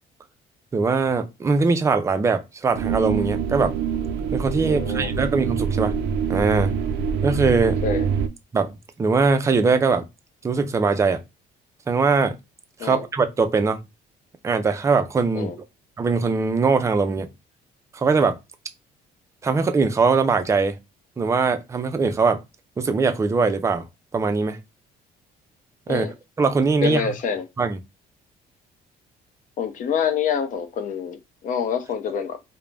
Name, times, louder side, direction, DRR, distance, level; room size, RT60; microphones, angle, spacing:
voice 1, 0.7-3.8 4.3-5.9 6.3-6.8 7.2-7.8 8.5-10.1 10.4-11.2 11.9-12.4 12.8-13.8 14.4-15.5 16.0-17.3 17.9-18.4 19.4-20.8 21.2-22.4 22.8-23.9 24.1-24.6 25.9-26.1 26.4-27.1 27.6-27.8, right 4 dB, 15° right, 0.4 m, -21 dB
sound 1, 2.7-8.3, right 6 dB, 85° right, 0.4 m, -25 dB
voice 2, 4.6-5.1 7.8-8.1 12.8-13.0 15.3-15.6 25.9-26.1 26.8-27.5 29.6-32.4, left 7 dB, 50° left, 0.5 m, -26 dB
2.3 x 2.1 x 3.2 m
cardioid pair, 110°, 17 cm